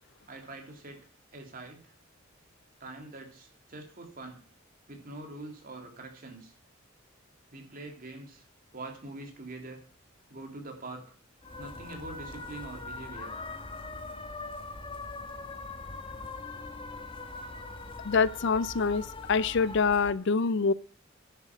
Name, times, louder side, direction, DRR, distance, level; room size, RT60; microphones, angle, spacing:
voice 1, 0.3-1.0 1.3-1.8 2.8-4.4 4.9-6.5 7.5-8.5 8.7-9.8 10.3-11.0 11.6-13.3, right 2 dB, 45° right, 3.3 m, -44 dB
sound 1, 11.4-20.1, left 3 dB, 25° left, 1.1 m, -41 dB
voice 2, 18.0-20.7, left 5 dB, 60° left, 0.5 m, -26 dB
10.5 x 7.5 x 7.4 m
head